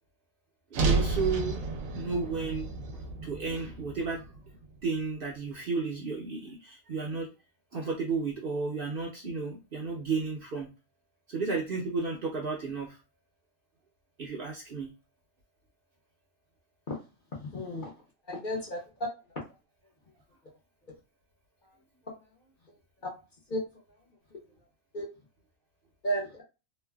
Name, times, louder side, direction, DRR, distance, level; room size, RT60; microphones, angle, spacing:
voice 1, 0.7-1.6 1.9-2.7 2.9-4.3 4.8-7.3 7.7-10.7 11.3-13.0 14.2-14.9, right 4 dB, 50° right, -2 dB, 0.8 m, -33 dB
sound 1, 0.7-5.0, right 3 dB, 85° right, 1.0 m, -32 dB
voice 2, 17.3-17.9 18.3-19.1 23.0-23.1 23.5-23.6 24.3-24.4 24.9-25.1 26.0-26.4, equal, 45° left, -3 dB, 0.9 m, -33 dB
3.2 x 2.2 x 2.3 m, 0.29 s
omnidirectional pair, 1.4 m